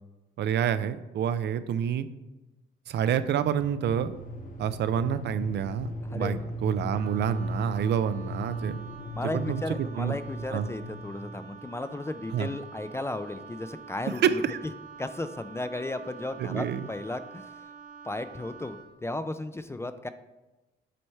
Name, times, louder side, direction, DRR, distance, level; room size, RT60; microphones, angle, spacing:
voice 1, 0.4-2.1 2.9-4.1 4.6-8.8 9.3-9.6 10.0-10.2 10.5-10.7 12.3-12.5 14.2-14.6 16.4-16.9, right 8 dB, 60° right, 13 dB, 0.4 m, -28 dB
sound 1, 3.6-11.4, equal, 45° left, 0.9 m, -37 dB
voice 2, 6.0-6.4 9.1-14.4 15.0-17.5 18.0-20.1, left 2 dB, 15° left, 11 dB, 0.3 m, -35 dB
Wind instrument woodwind instrument, 6.9-19.0, right 6 dB, 45° right, 1.0 m, -47 dB
7.8 x 3.2 x 4.3 m, 1.1 s
cardioid pair, 90°, 20 cm